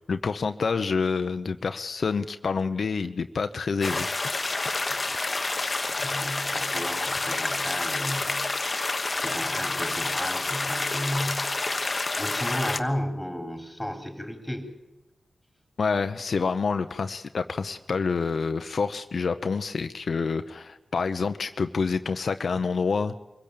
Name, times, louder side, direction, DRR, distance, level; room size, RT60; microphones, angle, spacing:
voice 1, 0.1-4.8 15.8-23.1, left 5 dB, 70° left, 9 dB, 0.8 m, -28 dB
sound 1, 3.8-12.8, left 2 dB, 35° left, 1.2 m, -28 dB
voice 2, 5.9-11.6 12.2-14.7, equal, 5° left, 3 dB, 4.8 m, -34 dB
25.0 x 16.5 x 8.6 m, 0.98 s
cardioid pair, 70°, 0 cm